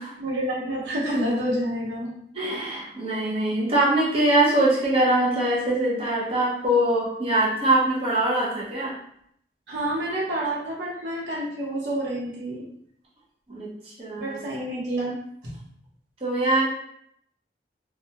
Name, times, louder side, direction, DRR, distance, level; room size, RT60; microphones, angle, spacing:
voice 1, 0.2-2.1 9.7-12.7 14.2-15.2 15.4-15.5, right 1 dB, 90° right, -5 dB, 1.0 m, -28 dB
voice 2, 2.3-8.9 13.5-14.4 16.2-16.6, right 1 dB, 35° right, -6 dB, 0.8 m, -23 dB
2.4 x 2.2 x 2.8 m, 0.70 s
head